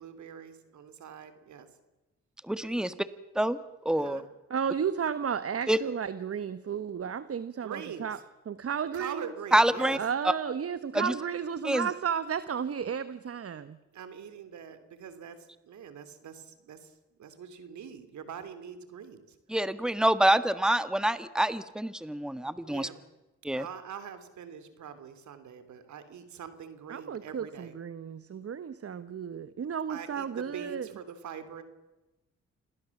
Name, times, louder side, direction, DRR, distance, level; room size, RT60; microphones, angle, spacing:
voice 1, 0.0-1.7 2.8-2.9 4.0-4.3 7.6-8.1 8.9-10.0 13.9-15.4 15.6-16.9 17.2-19.3 22.7-23.0 23.5-27.7 29.9-31.6, right 7 dB, 75° right, 11 dB, 3.2 m, -43 dB
voice 2, 2.4-2.9 3.3-3.6 3.8-4.2 5.7-5.8 9.5-10.0 10.2-10.3 10.9-11.1 11.6-11.9 19.5-22.9 23.4-23.7, right 1 dB, ahead, 12 dB, 1.6 m, -26 dB
voice 3, 4.5-8.2 8.5-9.3 10.0-13.8 26.9-30.9, right 7 dB, 50° right, 13 dB, 1.3 m, -33 dB
28.0 x 19.5 x 7.3 m, 1.1 s
cardioid pair, 65°, 29 cm